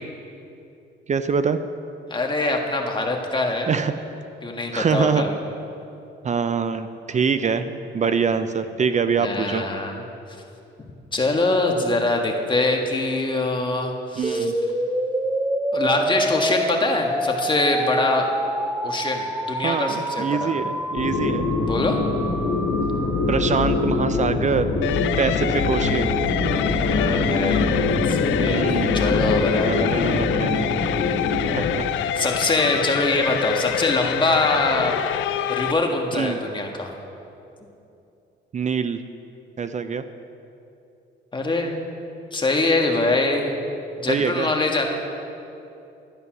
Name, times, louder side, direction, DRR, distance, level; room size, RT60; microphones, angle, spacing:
voice 1, 1.1-1.6 3.7-3.9 4.7-5.2 6.2-7.7 7.9-9.6 14.2-14.5 19.6-21.5 23.3-24.7 25.2-26.2 28.5-29.1 29.6-30.7 31.5-31.9 36.1-36.4 38.5-39.0 39.6-40.0 44.1-44.5, right 6 dB, 35° right, 11 dB, 0.5 m, -24 dB
voice 2, 2.1-3.7 4.4-5.3 9.2-10.0 11.1-14.5 15.7-18.3 18.8-20.5 21.7-22.0 26.7-27.8 28.1-28.7 28.9-29.9 32.2-35.0 35.5-36.9 41.3-41.8 42.3-43.6 44.0-44.9, left 2 dB, 25° left, 1 dB, 1.6 m, -23 dB
sound 1, 14.2-24.2, right 1 dB, 10° right, 0.8 m, -27 dB
sound 2, 21.0-31.7, left 3 dB, 65° left, 1.8 m, -23 dB
sound 3, 24.8-35.7, left 10 dB, 85° left, 0.5 m, -26 dB
11.0 x 9.6 x 6.1 m, 2.8 s
cardioid pair, 90°, 20 cm